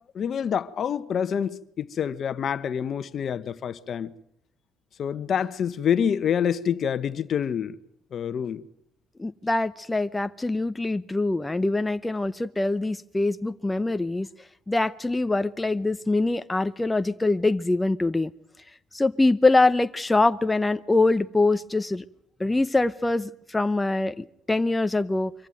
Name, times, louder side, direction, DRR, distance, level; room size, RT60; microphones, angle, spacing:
voice 1, 0.1-4.1 5.0-7.8 8.1-8.6, left 8 dB, 55° left, 1.1 m, -27 dB
voice 2, 9.2-14.3 14.7-18.3 18.9-22.0 22.4-25.3, left 2 dB, 15° left, 0.8 m, -24 dB
24.5 x 15.0 x 9.2 m
supercardioid pair, 80°, 0 cm